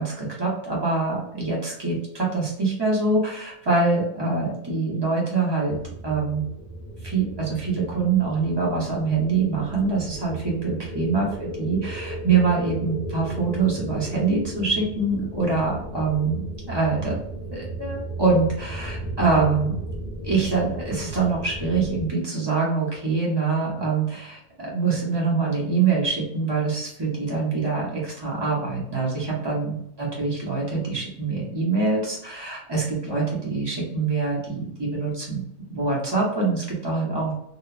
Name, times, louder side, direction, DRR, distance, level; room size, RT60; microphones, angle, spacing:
voice 1, 0.0-5.8 6.0-6.4 7.0-16.4 16.7-17.2 17.5-19.7 20.2-37.3, right 4 dB, 25° right, -5 dB, 0.5 m, -24 dB
sound 1, 5.6-22.1, right 1 dB, 80° left, 0.5 m, -35 dB
2.9 x 2.2 x 2.4 m, 0.76 s
omnidirectional pair, 1.6 m